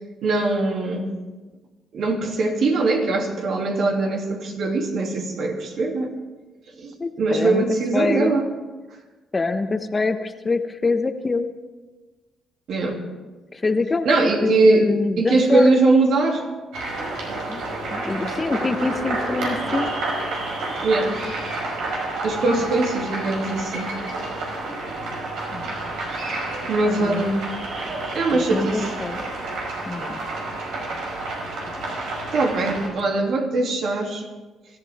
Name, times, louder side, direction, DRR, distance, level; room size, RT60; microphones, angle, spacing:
voice 1, 0.2-1.1 1.9-6.1 6.8-8.5 12.7-13.0 14.0-16.5 20.8-21.2 22.2-23.9 26.6-27.4 28.1-28.9 32.3-34.2, right 3 dB, 70° right, 1 dB, 2.9 m, -21 dB
voice 2, 7.0-7.6 7.9-8.4 9.3-11.5 13.5-15.9 17.5-17.6 17.9-19.9 22.6-22.7 25.5-25.7 27.0-27.2 28.3-29.2 29.9-30.2, left 3 dB, 25° left, 7 dB, 1.1 m, -24 dB
sound 1, 16.7-32.9, right 2 dB, 85° right, 5.5 m, -29 dB
25.0 x 14.0 x 3.6 m, 1.2 s
cardioid pair, 90°, 0 cm